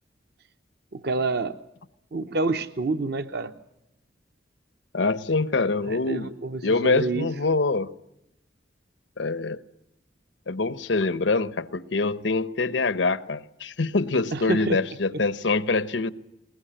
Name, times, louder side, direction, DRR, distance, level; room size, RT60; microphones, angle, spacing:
voice 1, 0.9-1.6 2.1-3.5 5.9-7.3 14.3-14.8 15.1-15.2, right 3 dB, 60° right, 0.8 m, -28 dB
voice 2, 4.9-6.3 6.6-7.9 9.2-9.6 10.5-16.1, left 3 dB, 85° left, 1.0 m, -25 dB
21.0 x 20.5 x 8.9 m
head